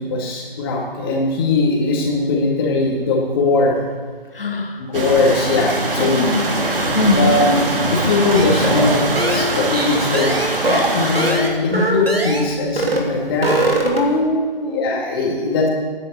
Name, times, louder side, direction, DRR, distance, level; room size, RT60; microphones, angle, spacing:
voice 1, 0.0-3.8 4.8-6.2 7.1-7.6 7.9-10.3 10.6-13.5 14.7-15.7, left 3 dB, 25° left, -1 dB, 2.1 m, -20 dB
voice 2, 4.3-4.8 6.0-6.5 6.9-7.4 13.8-14.9, left 2 dB, 70° left, 2 dB, 2.3 m, -20 dB
sound 1, 4.9-11.3, right 2 dB, 65° right, 2.7 m, -22 dB
sound 2, 8.3-12.5 12.8-13.1 13.3-14.2, right 1 dB, 80° right, 3.0 m, -21 dB
16.5 x 10.0 x 4.3 m, 1.5 s
figure-of-eight pair, 150°, 29 cm